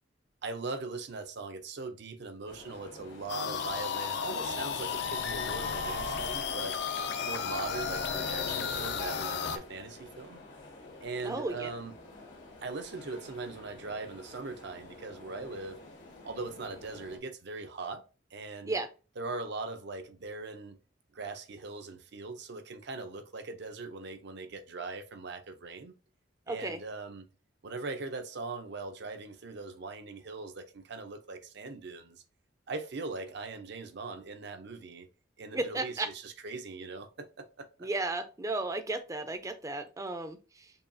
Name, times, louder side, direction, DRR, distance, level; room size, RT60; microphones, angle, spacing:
voice 1, 0.4-6.8 7.2-10.4 11.0-12.0 12.6-15.8 16.2-18.0 18.3-18.7 19.2-20.8 21.1-25.9 26.5-27.2 27.6-32.2 32.7-35.1 35.4-37.9, right 3 dB, 60° right, 0.6 m, -40 dB
sound 1, 2.5-17.2, left 2 dB, 80° left, 1.4 m, -50 dB
sound 2, 3.3-9.6, left 6 dB, 65° left, 0.5 m, -33 dB
voice 2, 11.2-11.7 18.7-18.9 26.5-26.8 35.5-36.1 37.8-40.7, right 2 dB, 15° right, 0.5 m, -34 dB
5.5 x 2.3 x 2.6 m
head